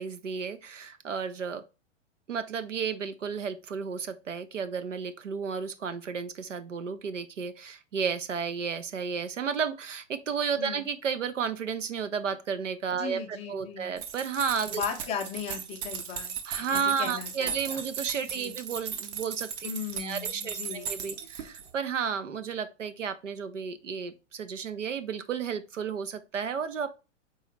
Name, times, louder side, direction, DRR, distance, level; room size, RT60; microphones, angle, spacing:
voice 1, 0.0-1.6 2.3-14.8 16.5-19.7 20.0-26.9, right 6 dB, 75° right, 0.7 m, -32 dB
voice 2, 10.6-10.9 13.0-13.9 14.7-17.8 18.3-18.5 19.6-20.9, left 7 dB, 15° left, 0.5 m, -37 dB
sound 1, 14.0-21.7, right 7 dB, 35° right, 0.8 m, -37 dB
4.0 x 3.8 x 3.1 m
figure-of-eight pair, 105°, 37 cm